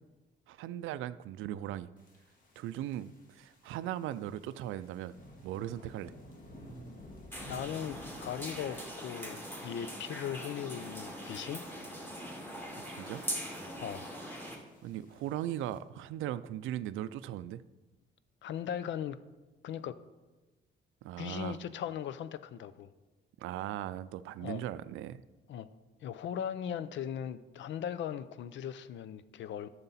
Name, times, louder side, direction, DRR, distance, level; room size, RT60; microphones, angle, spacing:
voice 1, 0.5-1.9 2.6-5.2 5.4-6.1 12.9-13.2 14.8-17.6 21.0-21.6 23.4-25.2, right 12 dB, 85° right, 15 dB, 0.4 m, -38 dB
sound 1, 2.0-15.8, left 1 dB, 45° left, 1.8 m, -55 dB
sound 2, 7.3-14.6, equal, 10° left, 2.4 m, -42 dB
voice 2, 7.4-11.6 13.8-14.1 18.4-19.2 19.6-20.0 21.2-22.9 24.4-24.6 25.5-25.7 26.0-29.7, left 9 dB, 70° left, 15 dB, 0.5 m, -38 dB
10.5 x 6.9 x 4.2 m, 1.2 s
cardioid pair, 90°, 20 cm